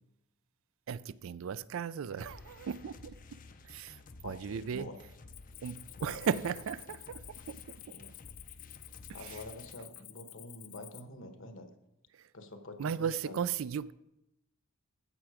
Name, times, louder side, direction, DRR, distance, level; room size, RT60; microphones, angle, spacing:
voice 1, 0.9-3.2 3.7-4.0 4.2-4.9 5.6-7.2 7.5-7.8 9.2-9.3 12.8-13.9, right 7 dB, 65° right, 0.3 m, -36 dB
sound 1, 2.1-9.7, left 3 dB, 40° left, 0.5 m, -53 dB
voice 2, 4.2-5.0 6.0-6.5 7.9-8.1 9.1-11.7 12.3-13.4, left 2 dB, 65° left, 1.2 m, -47 dB
Cricket, 5.3-11.0, left 18 dB, 85° left, 0.4 m, -51 dB
15.0 x 5.8 x 4.9 m
head